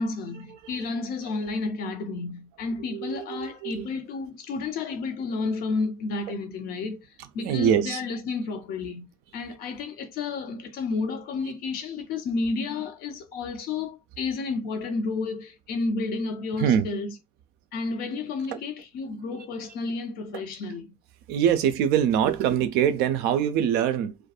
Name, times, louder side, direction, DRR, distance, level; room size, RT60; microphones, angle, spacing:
voice 1, 0.0-7.0 7.3-9.1 9.3-17.1 17.7-20.9, left 3 dB, 50° left, 0.6 m, -31 dB
voice 2, 2.9-3.9 7.4-8.0 16.6-16.9 18.5-18.6 21.3-24.2, right 9 dB, 55° right, 0.4 m, -23 dB
2.2 x 2.1 x 2.7 m
figure-of-eight pair, 50°, 19 cm